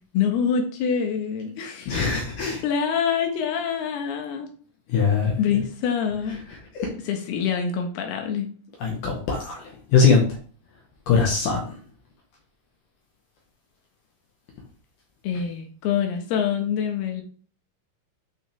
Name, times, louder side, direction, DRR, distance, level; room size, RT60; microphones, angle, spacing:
voice 1, 0.1-2.0 2.6-4.5 5.4-6.4 7.0-8.5 15.2-17.2, left 7 dB, 65° left, 4 dB, 2.7 m, -25 dB
voice 2, 1.9-2.6 4.9-5.3 6.8-6.9 8.8-9.6 9.9-10.2 11.1-11.6, left 5 dB, 90° left, -1 dB, 1.8 m, -20 dB
9.3 x 5.8 x 3.5 m, 0.43 s
omnidirectional pair, 6.0 m